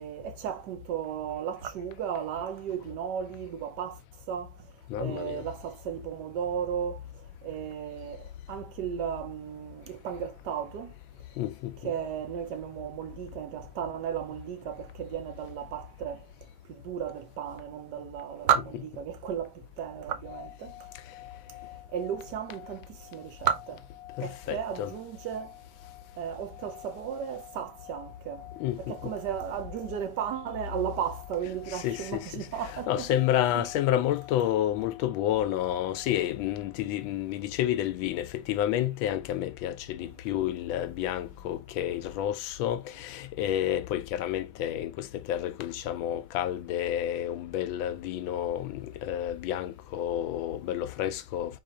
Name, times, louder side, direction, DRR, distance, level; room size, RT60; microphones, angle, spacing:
voice 1, 0.0-4.0 4.3-4.5 5.0-7.0 7.4-10.9 11.8-16.3 16.7-20.7 21.9-23.8 24.2-25.5 26.2-28.5 28.8-33.1 33.4-33.7 37.7-37.8 40.4-40.5, right 8 dB, 65° right, 1.3 m, -34 dB
voice 2, 4.9-5.4 11.4-11.7 24.2-24.9 28.6-29.1 31.7-32.5 32.9-51.6, left 12 dB, 90° left, 1.4 m, -30 dB
sound 1, 20.0-37.1, left 15 dB, 65° left, 1.1 m, -50 dB
4.4 x 2.8 x 3.7 m
omnidirectional pair, 2.1 m